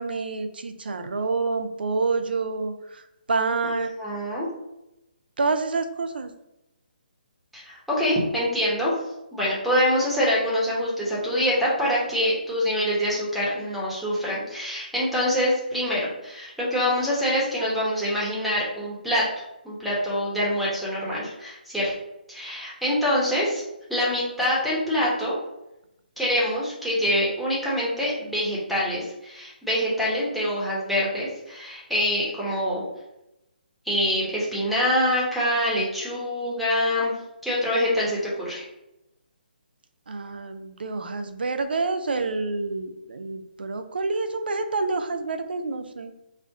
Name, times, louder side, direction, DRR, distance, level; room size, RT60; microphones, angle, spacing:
voice 1, 0.0-3.0 3.3-3.9 5.4-6.3 40.1-46.1, right 3 dB, 75° right, 8 dB, 0.5 m, -28 dB
voice 2, 4.0-4.5 7.5-8.9 9.3-19.3 19.6-21.9 22.3-23.6 23.9-25.4 26.2-32.8 33.8-37.1 37.4-38.6, equal, ahead, -7 dB, 1.1 m, -25 dB
4.4 x 2.4 x 3.6 m, 0.90 s
hypercardioid pair, 155°, 5 cm